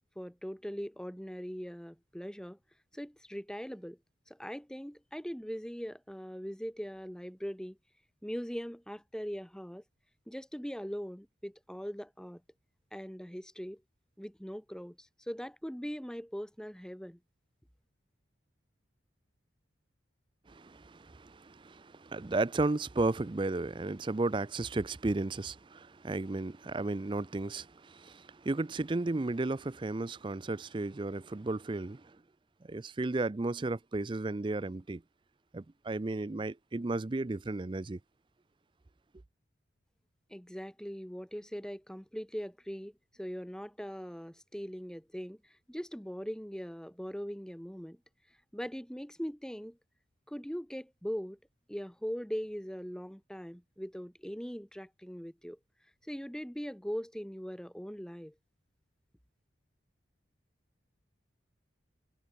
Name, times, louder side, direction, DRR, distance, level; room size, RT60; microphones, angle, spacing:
voice 1, 0.1-2.6 2.9-4.0 4.3-7.8 8.2-9.8 10.3-12.4 12.9-13.8 14.2-17.2 40.3-48.0 48.5-49.8 50.3-51.4 51.7-55.6 56.0-58.3, equal, 5° left, 1.4 m, -41 dB
voice 2, 20.5-32.2 32.7-35.0 35.5-38.0, right 2 dB, 25° right, 0.4 m, -34 dB
head